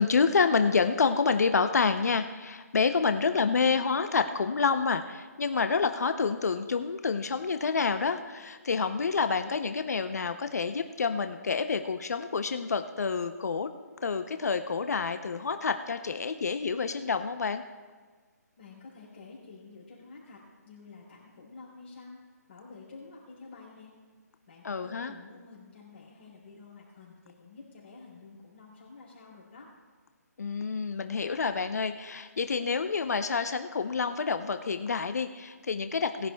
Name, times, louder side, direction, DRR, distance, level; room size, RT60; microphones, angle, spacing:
voice 1, 0.0-13.7 14.0-17.6 24.6-25.2 30.4-36.3, left 5 dB, 65° left, 8 dB, 0.7 m, -28 dB
voice 2, 18.6-22.2 22.5-23.9 24.5-29.7, left 4 dB, 40° left, -6 dB, 3.8 m, -50 dB
20.0 x 11.0 x 2.3 m, 1.4 s
hypercardioid pair, 170°, 9 cm